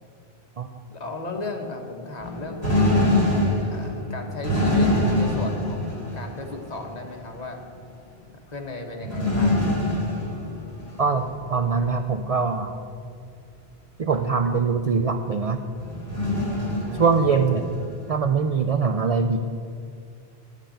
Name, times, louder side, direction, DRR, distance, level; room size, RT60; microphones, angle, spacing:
voice 1, 0.9-3.0 3.6-7.6 8.5-9.6 16.9-17.1, left 3 dB, 40° left, 3 dB, 1.2 m, -35 dB
sound 1, 2.2-7.0 9.0-11.2 11.6-11.7 14.2-14.3 15.8-18.1, left 1 dB, 85° right, 3.5 m, -24 dB
voice 2, 11.0-12.8 14.0-15.6 17.0-17.7 18.1-19.4, right 5 dB, 50° right, 6 dB, 0.4 m, -22 dB
11.0 x 5.5 x 8.7 m, 2.2 s
omnidirectional pair, 1.1 m